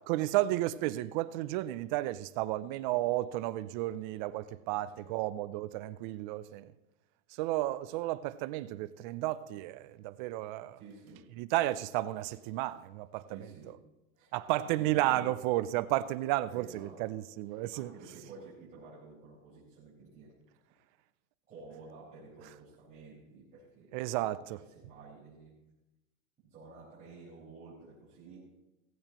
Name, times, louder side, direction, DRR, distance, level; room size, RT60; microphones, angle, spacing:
voice 1, 0.1-6.7 7.3-10.8 11.4-13.4 14.3-17.9 23.9-24.6, right 16 dB, 35° right, 0.4 m, -32 dB
voice 2, 4.6-5.1 10.7-11.3 13.3-13.7 14.1-15.4 16.5-17.1 17.7-20.3 21.5-25.5 26.4-28.4, right 3 dB, 20° right, 4.8 m, -52 dB
16.5 x 15.5 x 3.0 m
supercardioid pair, 145°, 43 cm